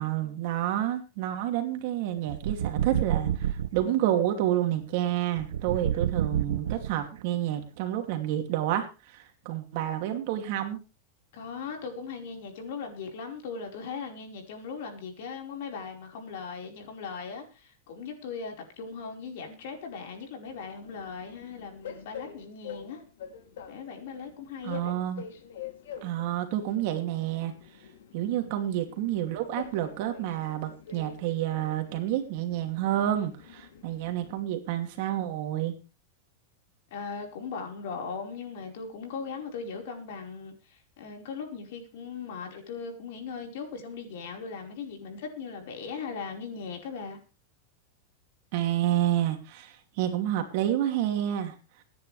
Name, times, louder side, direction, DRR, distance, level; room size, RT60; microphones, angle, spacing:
voice 1, 0.0-8.9 9.1-10.8 24.6-25.2 26.0-27.5 28.1-35.7 48.5-51.5, right 12 dB, 45° right, 5 dB, 2.7 m, -29 dB
sound 1, 2.3-3.9 5.4-7.2, right 10 dB, 85° right, 1.0 m, -29 dB
voice 2, 11.3-23.0 23.7-24.8 36.9-47.2, left 5 dB, 55° left, 3 dB, 4.8 m, -39 dB
Train, 20.4-34.4, left 8 dB, 85° left, 3.0 m, -46 dB
25.5 x 10.5 x 3.4 m, 0.32 s
supercardioid pair, 175°, 0 cm